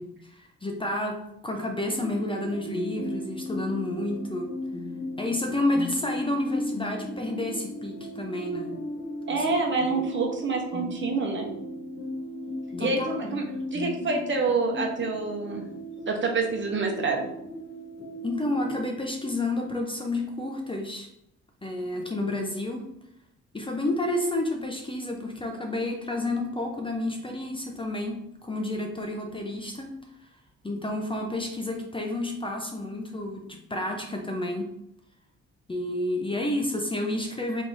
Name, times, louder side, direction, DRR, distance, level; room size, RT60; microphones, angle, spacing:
voice 1, 0.0-4.5 5.2-8.8 9.3-9.5 9.8-10.0 12.8-13.4 18.2-21.1 21.6-22.8 23.5-30.0 30.6-34.7 35.7-37.6, left 1 dB, 15° left, 2 dB, 0.7 m, -30 dB
sound 1, 1.8-18.8, left 1 dB, 35° left, 1.0 m, -37 dB
voice 2, 9.3-11.5 12.8-13.4 13.7-15.6 16.1-17.3, right 3 dB, 40° right, 1 dB, 1.1 m, -27 dB
3.5 x 3.0 x 4.0 m, 0.78 s
cardioid pair, 90°, 30 cm